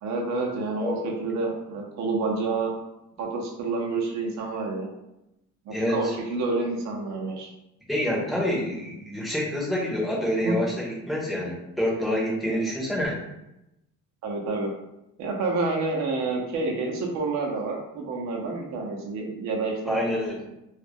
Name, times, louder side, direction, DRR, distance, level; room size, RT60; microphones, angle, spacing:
voice 1, 0.0-2.7 3.2-4.9 5.7-7.5 10.4-10.6 14.2-14.7 15.2-20.0, right 3 dB, 60° right, 0 dB, 0.6 m, -28 dB
voice 2, 0.7-1.2 5.7-6.2 7.9-13.2 19.9-20.4, left 1 dB, ahead, -4 dB, 0.6 m, -27 dB
2.4 x 2.1 x 3.4 m, 0.88 s
cardioid pair, 150°, 31 cm